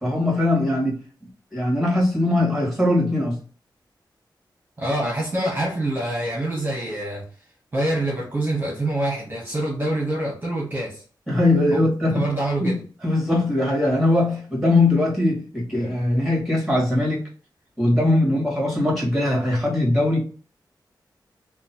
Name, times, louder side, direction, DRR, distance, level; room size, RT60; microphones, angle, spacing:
voice 1, 0.0-1.0 1.5-3.4 11.3-12.3 12.6-12.8 13.0-17.2 17.8-20.3, left 1 dB, ahead, 1.6 m, -21 dB
voice 2, 4.8-7.3 7.7-11.0 12.1-12.8, right 1 dB, 25° right, 1.0 m, -25 dB
3.0 x 2.2 x 4.1 m
wide cardioid pair, 140°, 8 cm